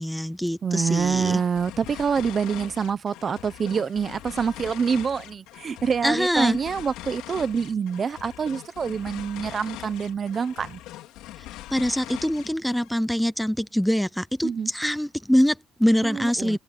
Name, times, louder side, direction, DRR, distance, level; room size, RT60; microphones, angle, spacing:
voice 1, 0.0-1.4 6.0-6.6 11.7-16.6, equal, ahead, 0.5 m, -24 dB
voice 2, 0.6-10.8 14.4-14.7 16.0-16.6, right 6 dB, 30° right, 0.8 m, -26 dB
sound 1, 0.7-13.0, left 15 dB, 90° left, 3.7 m, -42 dB
cardioid pair, 150°, 0 cm